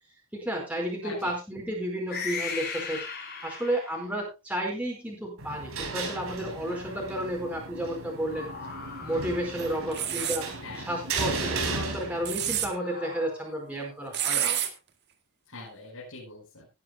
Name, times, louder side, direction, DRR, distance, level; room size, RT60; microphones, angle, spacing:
voice 1, 0.3-3.0 3.4-8.5 9.0-10.5 10.8-14.6, right 1 dB, 5° right, -1 dB, 4.7 m, -32 dB
voice 2, 1.0-1.3 9.2-9.4 9.9-10.3 10.6-10.9 15.5-16.7, left 3 dB, 80° left, -5 dB, 5.3 m, -43 dB
sound 1, 2.1-4.2 6.4-7.4 8.2-11.3 12.8-14.5, left 5 dB, 45° left, 7.0 m, -40 dB
sound 2, 5.4-12.7, right 3 dB, 80° right, 4.2 m, -35 dB
sound 3, 9.9-10.4 12.0-12.7 14.1-14.7, right 11 dB, 50° right, 1.8 m, -28 dB
18.5 x 11.0 x 2.3 m, 0.26 s
head